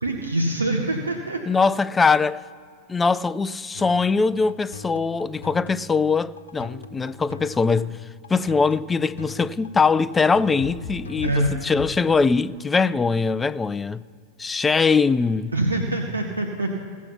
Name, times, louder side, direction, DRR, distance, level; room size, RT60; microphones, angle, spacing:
voice 1, 0.0-1.4 11.2-11.5 15.5-16.7, right 1 dB, 80° right, 1.0 m, -24 dB
voice 2, 1.5-2.4 2.9-8.0 8.3-14.0 14.4-15.5, left 4 dB, 15° left, 0.3 m, -22 dB
sound 1, 3.7-11.9, left 4 dB, 70° left, 0.9 m, -39 dB
17.0 x 7.2 x 5.8 m
figure-of-eight pair, 90°, 0 cm